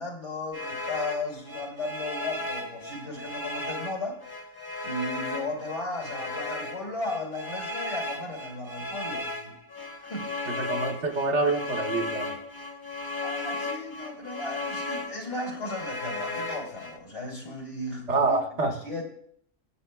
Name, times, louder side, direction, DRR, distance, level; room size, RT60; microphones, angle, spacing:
voice 1, 0.0-4.2 4.8-9.5 10.0-10.4 13.2-19.0, left 2 dB, 75° left, 2.8 m, -35 dB
sound 1, 0.5-17.0, left 2 dB, 20° left, 1.0 m, -35 dB
voice 2, 10.5-12.3 18.1-18.8, right 3 dB, 65° right, 1.2 m, -26 dB
22.0 x 7.7 x 2.2 m
omnidirectional pair, 1.3 m